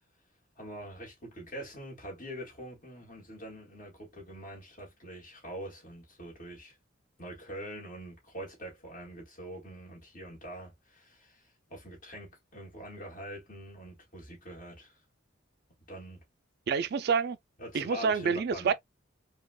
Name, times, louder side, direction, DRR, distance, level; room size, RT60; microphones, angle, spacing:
voice 1, 0.6-6.8 7.2-11.4 11.7-15.0 15.9-16.2 17.6-18.7, right 1 dB, 45° left, 2.0 m, -44 dB
voice 2, 16.7-17.4 17.7-18.7, right 5 dB, 55° right, 0.3 m, -27 dB
4.7 x 2.3 x 2.2 m
head